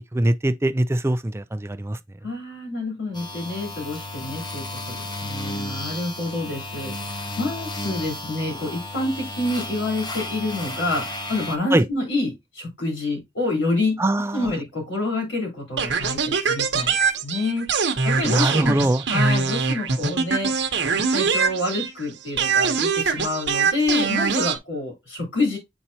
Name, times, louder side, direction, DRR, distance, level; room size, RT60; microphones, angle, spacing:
voice 1, 0.1-2.0 11.7-11.9 14.0-14.5 18.3-19.0, right 1 dB, 15° right, 0.4 m, -22 dB
voice 2, 2.2-14.0 14.3-18.8 19.1-20.7 21.1-25.6, left 2 dB, 85° left, 3.8 m, -28 dB
sound 1, 3.1-11.6, left 2 dB, 25° left, 0.9 m, -33 dB
sound 2, 15.8-22.0 22.4-24.6, right 5 dB, 65° right, 1.0 m, -23 dB
8.1 x 4.3 x 2.8 m
head